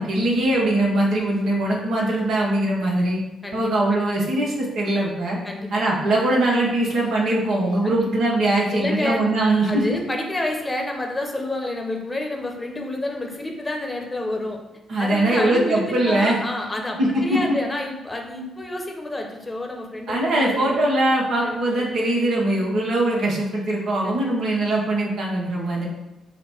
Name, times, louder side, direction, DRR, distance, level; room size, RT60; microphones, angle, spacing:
voice 1, 0.0-3.2 3.5-5.4 5.7-10.0 14.9-16.4 17.0-17.4 20.1-25.8, right 1 dB, 65° right, -3 dB, 0.9 m, -21 dB
voice 2, 5.4-5.8 7.8-8.0 8.7-9.2 9.7-14.6 15.0-20.8 21.4-21.9 24.0-24.3, left 2 dB, 25° left, 2 dB, 0.8 m, -29 dB
3.9 x 2.1 x 4.4 m, 1.0 s
hypercardioid pair, 45°, 0 cm